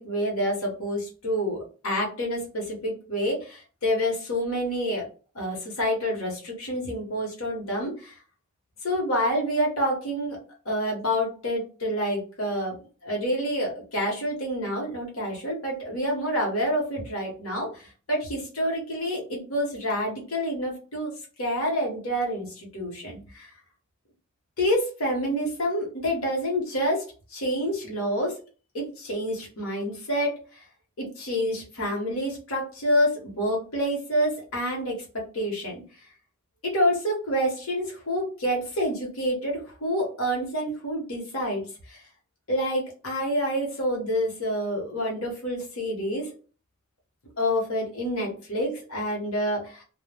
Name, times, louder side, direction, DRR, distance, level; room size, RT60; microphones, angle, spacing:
voice 1, 0.0-5.0 5.3-8.2 8.8-10.4 10.6-12.8 13.0-21.1 21.4-23.5 24.6-27.0 27.3-28.3 28.7-30.6 31.0-35.8 36.6-42.0 42.5-46.3 47.4-49.8, equal, 70° left, -2 dB, 1.0 m, -28 dB
2.2 x 2.1 x 3.3 m, 0.37 s
head